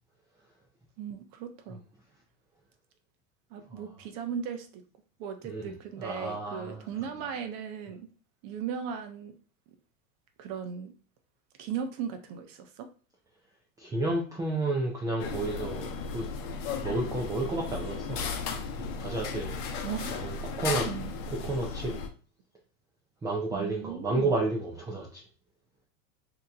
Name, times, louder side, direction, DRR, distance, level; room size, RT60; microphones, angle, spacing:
voice 1, 1.0-1.8 3.5-4.8 5.2-8.1 8.4-9.4 10.4-10.9 11.6-12.9 19.8-20.3 20.9-21.1 23.5-24.3, right 7 dB, 45° right, 7 dB, 0.7 m, -37 dB
voice 2, 5.5-6.9 13.8-16.3 16.8-18.3 18.8-19.6 20.1-20.9 21.4-21.9 23.2-25.2, right 2 dB, 10° right, -1 dB, 0.4 m, -31 dB
sound 1, 15.2-22.1, left 5 dB, 60° left, 0.8 m, -35 dB
2.9 x 2.1 x 3.8 m, 0.39 s
hypercardioid pair, 110°, 45 cm